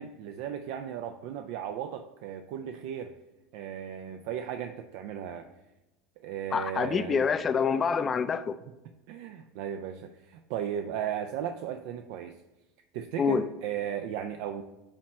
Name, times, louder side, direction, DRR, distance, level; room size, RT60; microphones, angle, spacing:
voice 1, 0.0-3.1 3.5-5.5 6.2-7.2 9.1-12.4 12.9-14.6, right 9 dB, 60° right, 0.4 m, -36 dB
voice 2, 6.5-8.6 13.2-13.5, left 6 dB, 30° left, 0.4 m, -26 dB
8.6 x 3.1 x 5.0 m
hypercardioid pair, 80°, 0 cm